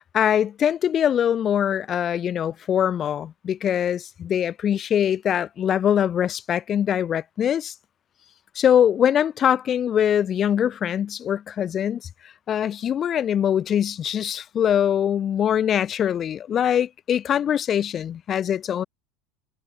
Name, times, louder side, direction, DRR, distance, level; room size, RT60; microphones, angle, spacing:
voice 1, 0.0-7.7 8.6-12.0 12.5-18.8, left 9 dB, 35° left, 5.5 m, -23 dB
figure-of-eight pair, 75°, 0 cm